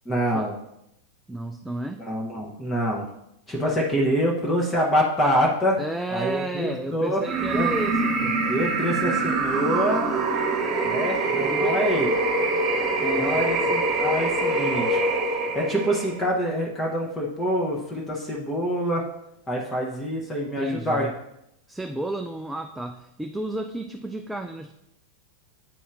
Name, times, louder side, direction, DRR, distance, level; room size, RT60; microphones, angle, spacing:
voice 1, 0.0-0.5 2.0-3.1 3.5-5.8 6.1-7.2 7.5-7.7 8.5-10.1 10.8-12.1 13.1-15.0 15.5-19.0 19.5-21.1, equal, 15° left, -3 dB, 0.9 m, -25 dB
voice 2, 1.3-2.0 5.8-8.3 11.5-11.8 13.0-13.5 20.6-21.1 21.7-24.7, right 1 dB, 5° right, 5 dB, 0.3 m, -32 dB
sound 1, 7.2-16.2, right 2 dB, 35° right, 1.2 m, -24 dB
9.1 x 4.1 x 2.5 m, 0.82 s
figure-of-eight pair, 90°, 0 cm